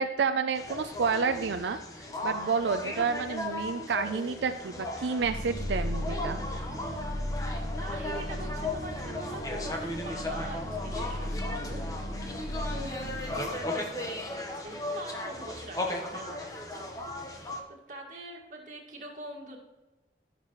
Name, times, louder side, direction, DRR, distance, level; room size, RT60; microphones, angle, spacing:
voice 1, 0.0-6.4, right 5 dB, 80° right, 8 dB, 0.4 m, -30 dB
sound 1, 0.6-17.6, left 2 dB, 20° left, 1.0 m, -37 dB
sound 2, 5.2-13.6, left 1 dB, 70° left, 1.3 m, -36 dB
voice 2, 7.8-11.8 12.2-16.9 17.2-19.6, right 1 dB, 45° right, -1 dB, 1.9 m, -44 dB
15.0 x 6.7 x 3.1 m, 1.1 s
head